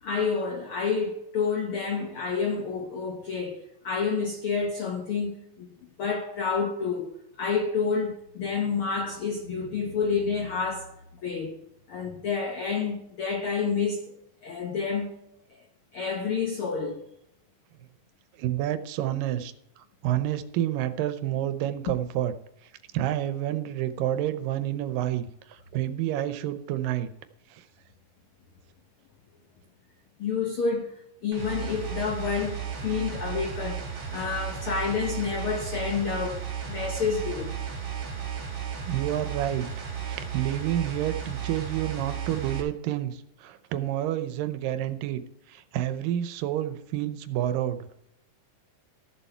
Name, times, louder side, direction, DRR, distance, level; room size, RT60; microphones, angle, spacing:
voice 1, 0.0-5.7 6.0-7.1 7.4-10.9 11.2-11.6 11.9-14.2 14.4-15.1 15.5-15.6 15.9-17.0 30.2-33.9 34.1-37.6, left 5 dB, 75° left, 1.2 m, -29 dB
voice 2, 18.4-19.5 20.0-22.3 22.9-27.1 27.5-27.6 38.9-39.7 40.0-45.2 45.5-47.9, right 12 dB, 85° right, 2.4 m, -29 dB
sound 1, 31.3-42.6, right 8 dB, 40° right, 2.5 m, -34 dB
14.0 x 7.2 x 4.5 m
omnidirectional pair, 3.9 m